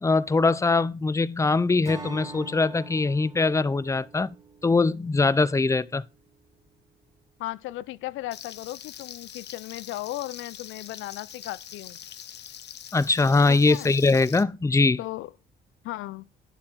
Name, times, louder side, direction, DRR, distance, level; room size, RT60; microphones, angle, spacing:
voice 1, 0.0-4.4 4.6-6.0 12.9-15.0, left 3 dB, 15° left, 0.6 m, -22 dB
Acoustic guitar / Strum, 1.8-5.9, right 2 dB, 15° right, 3.1 m, -44 dB
voice 2, 7.4-12.0 13.5-13.9 15.0-15.3 15.8-16.3, left 16 dB, 90° left, 0.5 m, -36 dB
Frying (food), 8.3-14.4, left 10 dB, 60° left, 0.8 m, -43 dB
11.0 x 7.5 x 4.6 m
cardioid pair, 90°, 20 cm